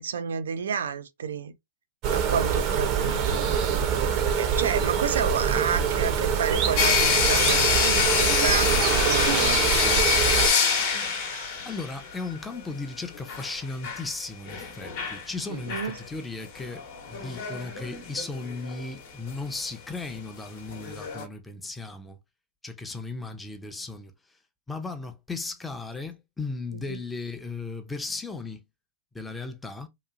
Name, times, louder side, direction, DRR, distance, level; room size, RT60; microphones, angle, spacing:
voice 1, 0.0-1.6 2.1-3.5 4.4-9.7 15.5-16.0 26.7-27.0, right 7 dB, 75° right, 0.3 m, -30 dB
sound 1, 2.0-10.5, right 7 dB, 40° right, 0.6 m, -25 dB
sound 2, 6.8-12.2 12.5-12.6 13.1-14.1 14.5-15.3 15.7-16.0 16.6-18.8 19.3-19.4 20.0-20.1 20.7-21.2, left 6 dB, 55° left, 0.9 m, -25 dB
voice 2, 11.6-22.2 22.6-24.1 24.7-28.6 29.1-29.9, left 3 dB, 10° left, 0.6 m, -36 dB
2.9 x 2.4 x 2.4 m
hypercardioid pair, 110°, 0 cm